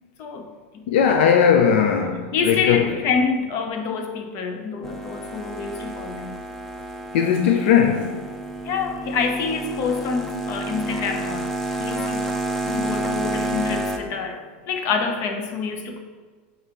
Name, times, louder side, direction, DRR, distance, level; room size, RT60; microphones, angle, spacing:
voice 1, 0.9-3.0 7.1-8.2, left 7 dB, 70° left, 5 dB, 0.5 m, -18 dB
voice 2, 2.3-6.4 8.6-11.5 11.8-12.3 12.6-14.4 14.7-16.0, left 5 dB, 45° left, 5 dB, 0.8 m, -27 dB
sound 1, 4.8-14.0, right 2 dB, 5° left, 0.5 m, -29 dB
8.5 x 4.0 x 3.0 m, 1.4 s
supercardioid pair, 140°, 7 cm